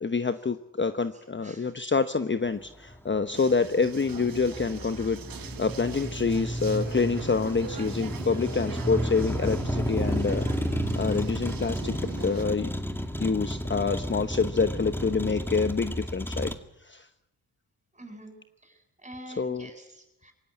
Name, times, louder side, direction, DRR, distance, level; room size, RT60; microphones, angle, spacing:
voice 1, 0.0-5.2 5.6-10.5 10.9-12.0 12.2-12.7 13.2-16.5 16.8-17.1 19.4-19.7, left 4 dB, 30° left, 10 dB, 1.0 m, -27 dB
voice 2, 1.1-1.7 11.7-11.8 17.9-18.4 18.6-20.3, equal, 15° right, 5 dB, 7.6 m, -46 dB
Motor vehicle (road), 2.5-16.5, equal, 5° left, 2.2 m, -32 dB
sound 1, 3.3-12.4, right 8 dB, 60° right, 1.2 m, -43 dB
22.0 x 17.0 x 9.8 m, 0.91 s
cardioid pair, 55°, 39 cm